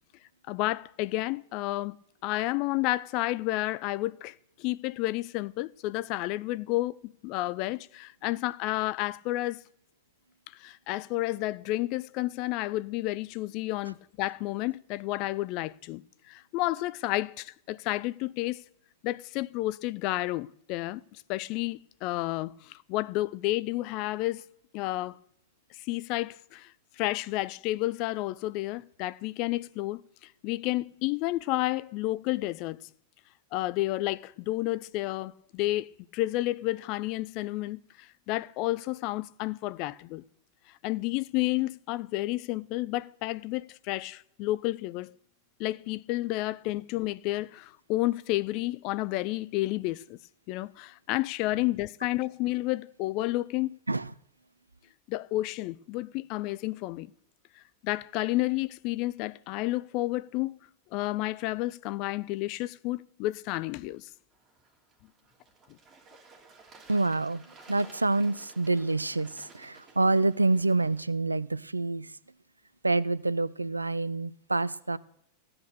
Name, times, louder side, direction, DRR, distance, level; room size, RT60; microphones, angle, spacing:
voice 1, 0.5-2.0 2.2-4.3 4.6-9.6 10.6-16.0 16.3-18.6 19.0-24.4 24.7-25.2 25.9-26.7 27.0-30.0 30.4-32.8 33.5-40.2 40.8-45.1 45.6-50.2 50.5-53.8 55.1-57.1 57.8-60.5 60.9-64.0, left 18 dB, 45° left, 0.4 m, -31 dB
Bird / Water, 64.3-71.0, right 3 dB, 20° right, 3.1 m, -55 dB
voice 2, 66.9-72.2 72.8-75.0, right 2 dB, 80° right, 0.5 m, -27 dB
15.5 x 8.7 x 6.7 m
figure-of-eight pair, 90°, 0 cm